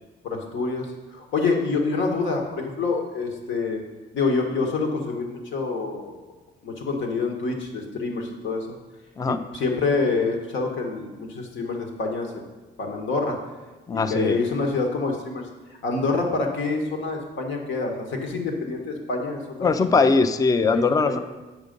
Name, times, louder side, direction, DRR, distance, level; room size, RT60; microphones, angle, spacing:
voice 1, 0.2-3.8 4.1-6.2 6.6-8.7 9.3-12.3 12.8-13.4 13.9-15.4 15.8-20.1 20.7-21.2, left 3 dB, 75° left, 2 dB, 1.5 m, -27 dB
voice 2, 13.9-14.4 19.6-21.2, left 4 dB, 20° left, 10 dB, 0.4 m, -20 dB
8.1 x 5.1 x 5.2 m, 1.2 s
cardioid pair, 90°, 20 cm